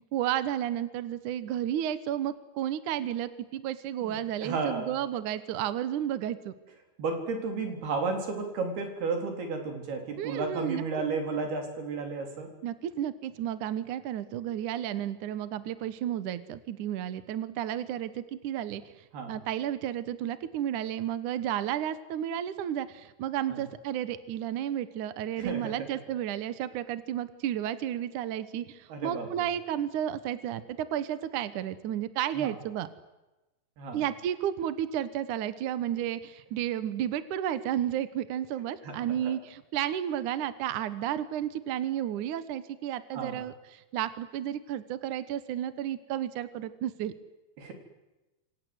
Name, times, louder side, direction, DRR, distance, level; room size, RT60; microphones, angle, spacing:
voice 1, 0.1-6.5 10.2-10.8 12.6-32.9 33.9-47.1, right 11 dB, 65° right, 13 dB, 2.4 m, -32 dB
voice 2, 4.0-5.0 7.0-12.5 19.1-19.4 23.5-23.6 25.4-25.9 28.9-29.5 32.3-32.6 33.8-34.0 36.0-36.1 38.8-39.3 43.1-43.4 47.6-47.7, right 4 dB, 90° right, 4 dB, 5.9 m, -33 dB
27.5 x 25.0 x 8.0 m, 1.1 s
omnidirectional pair, 4.4 m